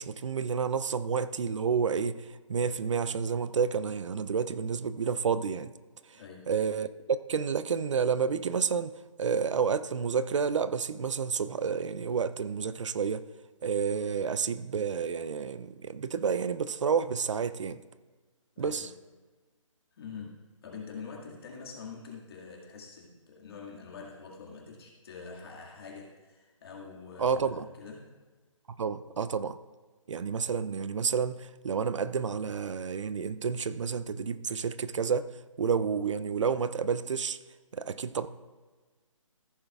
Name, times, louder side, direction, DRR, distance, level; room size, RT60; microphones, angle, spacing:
voice 1, 0.0-5.7 6.5-8.9 9.2-13.2 13.6-17.8 18.6-18.9 27.2-27.7 28.7-29.6 30.1-35.3 35.6-37.4 37.7-38.3, right 6 dB, 65° right, 0.5 m, -30 dB
voice 2, 6.2-6.5 18.6-18.9 20.0-28.1, left 5 dB, 45° left, 2.0 m, -45 dB
15.0 x 8.5 x 2.4 m
hypercardioid pair, 155°, 17 cm